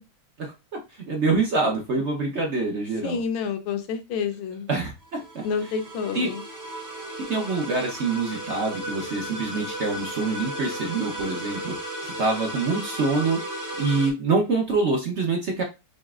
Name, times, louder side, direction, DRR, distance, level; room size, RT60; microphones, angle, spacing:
voice 1, 0.4-3.2 4.7-5.4 6.1-6.3 7.3-11.7 12.0-13.4 13.8-15.6, right 3 dB, 65° right, 0 dB, 0.6 m, -25 dB
voice 2, 3.0-4.7 5.4-6.4, left 6 dB, 75° left, 8 dB, 1.4 m, -29 dB
sound 1, 5.0-14.1, right 1 dB, 15° right, 0.6 m, -35 dB
5.2 x 3.4 x 2.4 m, 0.26 s
omnidirectional pair, 2.3 m